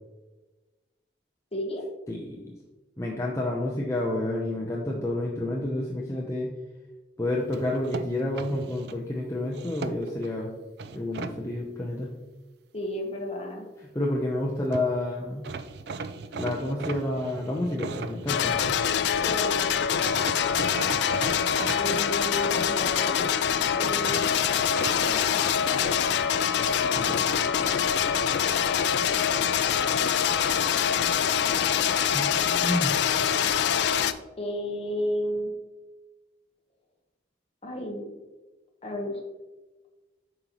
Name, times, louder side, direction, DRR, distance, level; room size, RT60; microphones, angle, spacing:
voice 1, 1.5-1.8 12.7-13.7 19.2-19.6 21.7-23.2 23.7-24.4 25.0-25.4 25.7-26.1 34.4-35.5 37.6-38.1 38.8-39.2, left 1 dB, 30° left, 1 dB, 1.1 m, -33 dB
voice 2, 2.1-2.5 3.0-6.5 7.2-10.5 10.9-12.1 13.9-15.5 16.3-18.5 26.9-27.3 32.1-33.0, left 1 dB, 15° left, -3 dB, 0.6 m, -29 dB
sound 1, 7.5-9.0 9.5-10.3 10.8-11.3 14.4-14.5 14.7-14.9 15.4-18.9 20.0-21.8 24.0-25.0, right 4 dB, 60° right, 0.4 m, -37 dB
sound 2, 18.3-34.1, left 8 dB, 65° left, 0.4 m, -24 dB
7.8 x 5.2 x 3.0 m, 1.2 s
head